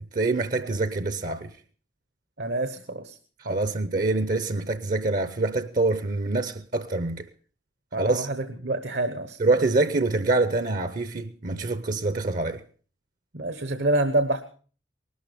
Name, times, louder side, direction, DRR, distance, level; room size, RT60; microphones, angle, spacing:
voice 1, 0.1-1.5 3.5-7.3 8.0-8.3 9.4-12.6, right 2 dB, 50° right, 0.7 m, -25 dB
voice 2, 2.4-3.2 3.4-3.6 7.9-9.4 13.3-14.4, right 2 dB, 70° right, 1.1 m, -27 dB
19.5 x 12.5 x 5.1 m
head